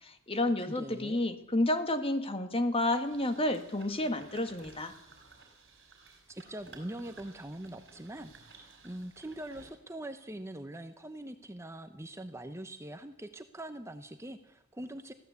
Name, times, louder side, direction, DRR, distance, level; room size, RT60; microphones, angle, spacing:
voice 1, 0.0-4.9, left 1 dB, 25° left, 8 dB, 1.8 m, -30 dB
voice 2, 0.6-1.2 6.3-15.1, right 1 dB, 15° right, 8 dB, 0.9 m, -43 dB
sound 1, 2.9-9.7, right 3 dB, 55° right, 5.1 m, -56 dB
22.0 x 15.5 x 8.2 m, 0.82 s
head